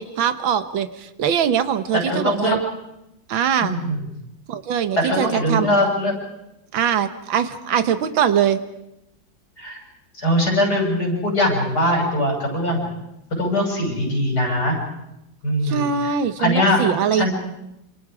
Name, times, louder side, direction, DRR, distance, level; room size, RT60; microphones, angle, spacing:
voice 1, 0.0-2.6 3.3-3.8 4.5-5.7 6.7-8.6 15.6-17.3, right 8 dB, 90° right, 11 dB, 1.9 m, -22 dB
voice 2, 2.1-2.6 3.6-4.0 5.0-6.1 9.6-9.8 10.1-12.9 13.4-14.7 15.4-16.1 16.4-16.8 17.1-17.3, left 1 dB, 55° left, 0 dB, 6.7 m, -21 dB
27.5 x 26.5 x 4.9 m, 0.87 s
omnidirectional pair, 2.1 m